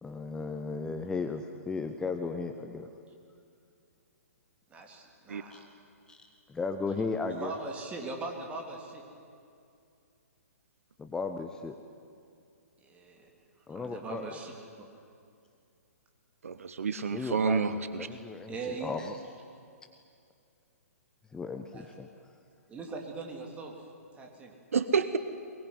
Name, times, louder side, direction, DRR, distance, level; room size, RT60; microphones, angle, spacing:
voice 1, 0.0-2.9 5.5-5.6 6.1-7.5 11.0-11.8 13.7-14.4 17.1-19.2 21.3-22.1, left 4 dB, 10° left, 6 dB, 0.9 m, -36 dB
voice 2, 4.7-5.6 7.4-9.0 12.8-13.3 13.7-14.5 14.8-14.9 18.5-18.9 21.7-21.9 22.7-23.7 24.2-24.5, right 3 dB, 15° right, 1 dB, 3.5 m, -40 dB
voice 3, 16.4-18.1 24.7-25.2, right 5 dB, 60° right, 12 dB, 1.1 m, -29 dB
22.5 x 22.0 x 9.7 m, 2.4 s
figure-of-eight pair, 120°, 8 cm